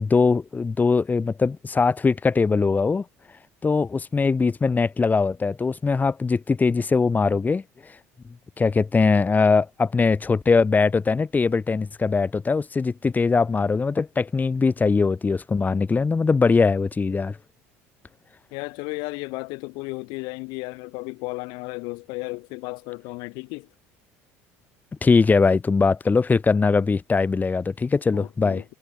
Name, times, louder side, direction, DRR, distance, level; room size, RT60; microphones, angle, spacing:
voice 1, 0.0-3.0 3.6-7.6 8.6-17.4 25.0-28.6, left 4 dB, 20° left, 1.5 m, -21 dB
voice 2, 18.5-23.7 28.1-28.6, left 28 dB, 70° left, 2.0 m, -34 dB
hypercardioid pair, 80°, 7 cm